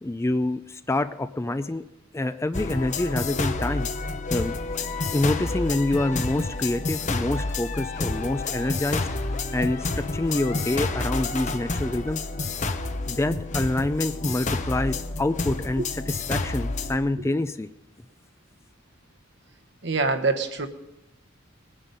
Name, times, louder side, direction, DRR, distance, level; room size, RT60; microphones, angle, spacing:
voice 1, 0.0-1.8 2.1-3.9 4.3-4.6 5.1-9.1 9.5-12.3 13.1-17.7, left 2 dB, 15° left, 12 dB, 0.4 m, -26 dB
sound 1, 2.5-17.0, left 3 dB, 40° left, 0.8 m, -29 dB
voice 2, 19.8-20.7, right 3 dB, 60° right, 6 dB, 1.1 m, -24 dB
20.0 x 9.9 x 5.3 m, 0.97 s
head